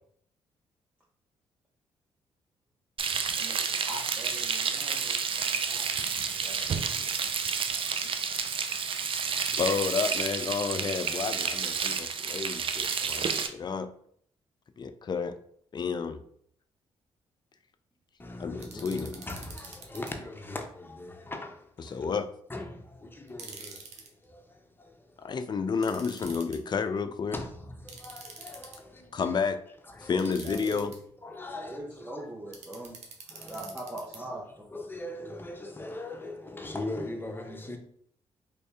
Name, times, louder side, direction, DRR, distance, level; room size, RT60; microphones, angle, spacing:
Frying (food), 3.0-13.5, right 6 dB, 50° right, 0.5 m, -30 dB
voice 1, 3.3-8.5 30.2-30.9 31.5-33.0 33.4-34.7, right 1 dB, 10° right, 0.9 m, -43 dB
voice 2, 9.3-13.9 14.8-15.4 15.7-16.2 18.4-19.1 21.8-22.3 25.2-27.4 29.1-29.6 30.0-30.9, left 5 dB, 40° left, 0.4 m, -31 dB
voice 3, 18.2-22.1 22.5-25.4 27.3-29.4 29.9-30.2 31.2-32.3 32.8-32.9 33.3-33.7 34.7-37.8, left 2 dB, 15° left, 0.8 m, -41 dB
sound 1, 18.6-20.1 23.3-24.1 25.8-26.6 27.9-29.0 30.2-31.0 32.5-34.2, right 5 dB, 75° right, 0.8 m, -46 dB
3.3 x 2.6 x 3.4 m
supercardioid pair, 55°, 12 cm